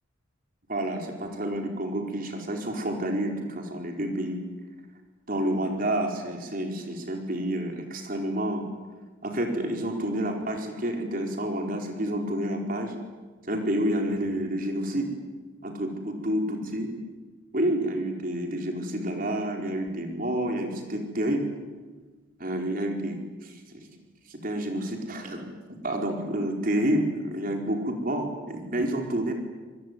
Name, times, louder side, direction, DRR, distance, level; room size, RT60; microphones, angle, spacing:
voice 1, 0.7-4.4 5.3-8.6 9.2-12.9 13.4-15.1 15.6-16.9 17.5-21.5 22.4-23.8 24.3-25.4 25.8-29.3, right 1 dB, 45° right, 2 dB, 4.6 m, -29 dB
28.0 x 22.0 x 9.6 m, 1.3 s
head